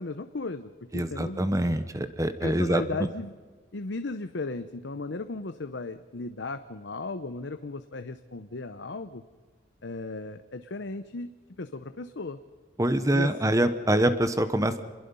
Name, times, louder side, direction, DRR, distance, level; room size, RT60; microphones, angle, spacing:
voice 1, 0.0-1.6 2.4-3.3 3.7-9.2 9.8-11.3 11.6-12.4 13.1-13.3, left 3 dB, 65° left, 10 dB, 0.8 m, -36 dB
voice 2, 0.9-2.8 12.8-14.8, right 1 dB, 15° right, 11 dB, 1.0 m, -25 dB
27.0 x 21.0 x 5.5 m, 1.5 s
head